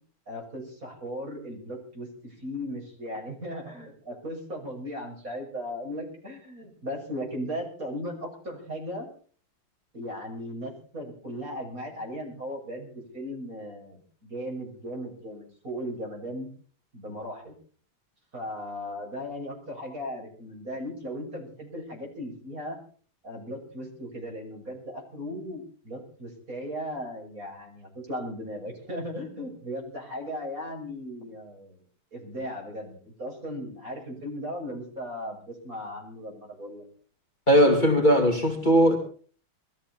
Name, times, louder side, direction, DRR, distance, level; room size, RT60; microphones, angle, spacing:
voice 1, 0.3-9.1 9.9-16.5 16.9-17.5 18.3-22.8 23.2-31.8 32.1-36.9, equal, 40° right, 7.3 m, -37 dB
voice 2, 37.5-39.0, equal, 20° left, 2.5 m, -19 dB
22.0 x 15.0 x 4.2 m
omnidirectional pair, 2.3 m